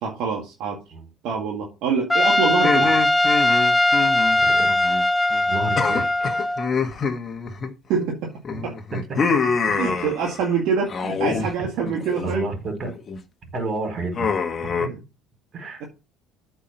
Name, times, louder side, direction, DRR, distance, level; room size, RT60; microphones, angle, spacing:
voice 1, 0.0-0.8 1.2-3.0 7.9-8.3 8.6-8.7 9.8-12.5 14.8-15.0, right 6 dB, 70° right, 1.9 m, -25 dB
Trumpet, 2.1-6.7, left 1 dB, 10° left, 0.8 m, -20 dB
sound 1, 2.6-5.0 5.3-5.5 5.8-8.1 8.4-10.5 10.9-11.5 11.8-12.3 12.8-13.2 14.1-14.9, left 5 dB, 35° left, 1.3 m, -26 dB
voice 2, 4.3-5.0 5.5-6.1 8.5-8.6 8.9-9.3 12.2-12.9 13.5-14.5 14.8-14.9 15.5-15.8, right 3 dB, 45° right, 4.5 m, -30 dB
8.4 x 4.7 x 5.8 m
supercardioid pair, 100°, 0 cm